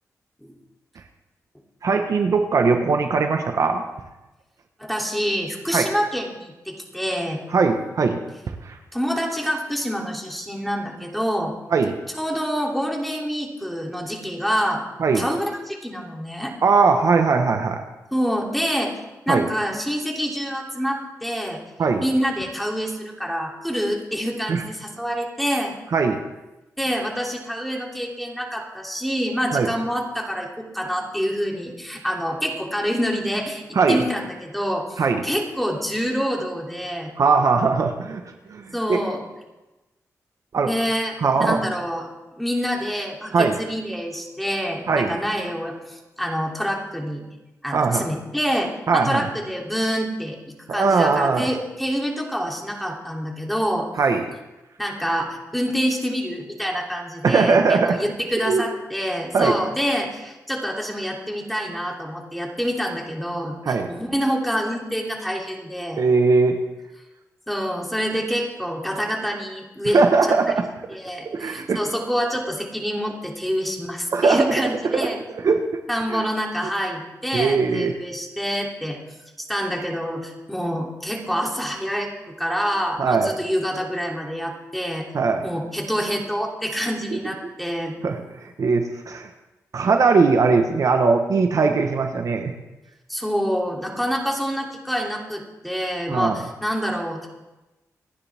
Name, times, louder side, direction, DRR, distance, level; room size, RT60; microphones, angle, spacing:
voice 1, 1.8-3.8 5.7-5.9 7.5-8.2 8.6-8.8 11.7-12.0 15.0-15.2 16.6-17.8 19.3-19.5 21.8-22.0 24.5-24.6 25.9-26.2 29.5-29.7 33.7-34.0 35.0-35.2 37.2-38.2 38.5-39.0 40.5-40.7 41.2-41.6 43.3-43.6 44.9-45.2 47.7-48.1 48.9-49.2 50.7-51.5 54.0-54.2 57.2-58.0 58.4-58.6 59.3-59.6 63.7-63.9 65.9-66.6 69.9-70.6 71.2-71.8 74.1-75.1 75.4-75.6 76.1-76.3 77.3-77.9 83.0-83.3 85.1-85.4 87.1-87.2 88.0-89.3 89.7-92.5 96.1-96.4, right 4 dB, 65° right, 5 dB, 1.2 m, -20 dB
voice 2, 4.8-7.4 8.9-11.5 12.1-14.8 15.1-16.5 18.1-18.9 19.3-21.6 22.0-25.8 26.8-37.1 38.7-39.2 40.6-42.1 42.4-47.2 47.6-53.9 54.8-66.0 67.5-70.0 70.9-75.2 75.9-79.0 79.4-85.1 85.4-87.9 93.1-97.3, equal, ahead, -1 dB, 2.9 m, -26 dB
27.0 x 10.0 x 3.6 m, 1.0 s
wide cardioid pair, 95°, 6 cm